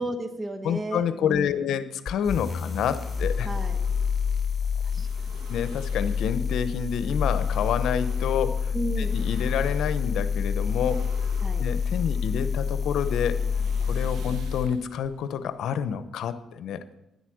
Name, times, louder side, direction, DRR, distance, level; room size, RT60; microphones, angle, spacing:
voice 1, 0.0-1.7 3.4-3.8 4.9-5.5 8.7-9.1 11.4-11.6 14.2-14.3, right 1 dB, 30° right, 7 dB, 1.2 m, -34 dB
voice 2, 0.6-3.5 5.5-8.7 9.0-11.0 11.6-13.4 13.8-16.8, left 8 dB, 75° left, 12 dB, 0.8 m, -28 dB
sound 1, 2.1-14.7, left 6 dB, 35° left, 0.3 m, -28 dB
sound 2, 2.2-16.1, right 4 dB, 80° right, 1.4 m, -49 dB
11.0 x 8.2 x 6.4 m, 0.93 s
cardioid pair, 90°, 0 cm